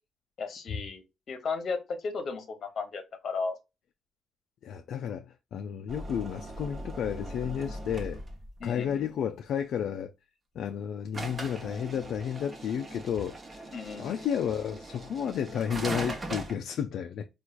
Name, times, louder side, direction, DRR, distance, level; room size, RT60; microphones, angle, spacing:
voice 1, 0.4-3.6 8.6-9.0 13.7-14.2, left 4 dB, 55° left, 0.9 m, -35 dB
voice 2, 4.6-8.2 8.6-10.1 10.6-13.7 14.0-17.3, left 8 dB, 70° left, 0.3 m, -32 dB
sound 1, 5.9-8.6 11.1-16.5, right 2 dB, 30° right, 0.9 m, -39 dB
4.4 x 2.3 x 2.4 m
cardioid pair, 90°, 0 cm